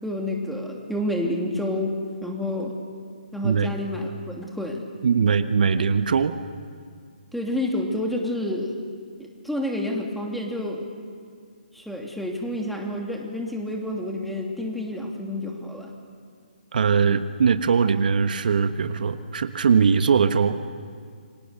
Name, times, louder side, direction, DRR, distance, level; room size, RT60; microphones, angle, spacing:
voice 1, 0.0-1.9 2.2-2.7 3.3-4.9 7.3-8.7 9.2-10.8 11.7-15.9, left 1 dB, ahead, 0 dB, 2.8 m, -29 dB
voice 2, 3.4-3.7 5.0-6.4 16.7-20.6, right 6 dB, 60° right, 9 dB, 1.3 m, -21 dB
28.5 x 25.0 x 6.9 m, 2.1 s
hypercardioid pair, 145°, 5 cm